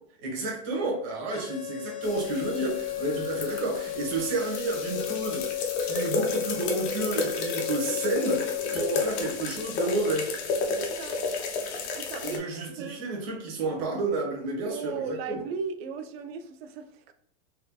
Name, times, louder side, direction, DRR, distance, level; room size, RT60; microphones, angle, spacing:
voice 1, 0.2-10.3 12.2-15.4, right 2 dB, 35° right, 1.2 m, -31 dB
sound 1, 1.3-9.3, left 14 dB, 35° left, 0.5 m, -34 dB
sound 2, 2.0-12.4, left 4 dB, 60° left, 0.9 m, -32 dB
voice 2, 8.8-9.2 10.7-11.2 11.9-13.0 14.7-17.1, right 5 dB, 55° right, 0.6 m, -37 dB
4.2 x 2.7 x 2.3 m
supercardioid pair, 155°, 36 cm